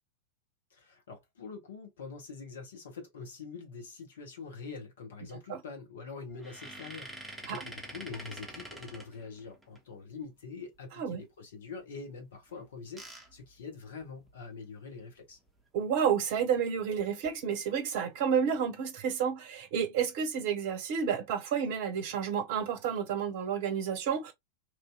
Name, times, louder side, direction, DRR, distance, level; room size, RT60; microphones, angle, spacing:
voice 1, 0.7-15.4, left 5 dB, 60° left, 1.2 m, -45 dB
sound 1, 6.3-9.8 12.5-14.4 15.0-15.1 15.3-15.5 17.0-17.3 17.9-18.4, right 1 dB, 5° right, 0.8 m, -47 dB
voice 2, 15.7-24.3, right 7 dB, 50° right, 0.7 m, -30 dB
3.0 x 2.7 x 2.3 m
figure-of-eight pair, 90°, 0 cm